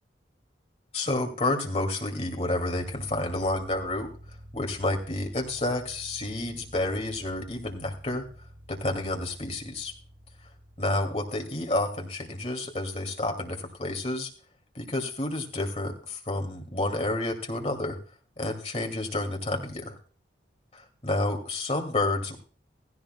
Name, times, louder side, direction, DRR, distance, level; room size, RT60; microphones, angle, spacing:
voice 1, 0.9-4.1 4.5-8.3 8.7-9.9 10.8-14.3 14.7-18.0 18.4-20.0 20.7-22.4, left 2 dB, 35° left, 3 dB, 2.3 m, -30 dB
sound 1, 2.8-11.4, equal, 85° right, 1.5 m, -49 dB
15.5 x 15.5 x 2.2 m, 0.39 s
head